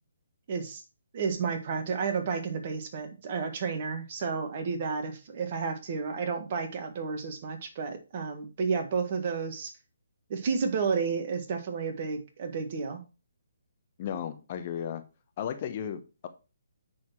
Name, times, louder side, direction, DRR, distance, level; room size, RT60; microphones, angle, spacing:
voice 1, 0.5-0.8 1.1-9.7 10.3-13.0, right 5 dB, 40° right, 7 dB, 1.5 m, -31 dB
voice 2, 14.0-15.0 15.4-16.3, left 9 dB, 35° left, 8 dB, 0.9 m, -34 dB
9.4 x 4.3 x 4.6 m, 0.32 s
figure-of-eight pair, 135°, 0 cm